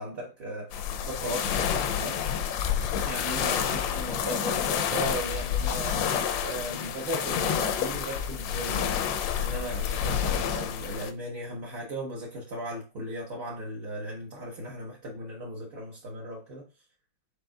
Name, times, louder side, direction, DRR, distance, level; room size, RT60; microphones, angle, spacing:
voice 1, 0.0-2.2 3.0-6.1 6.4-16.7, right 1 dB, 50° right, 0.7 m, -37 dB
sound 1, 0.7-11.1, left 8 dB, 85° left, 1.3 m, -29 dB
5.2 x 4.2 x 2.2 m
omnidirectional pair, 2.0 m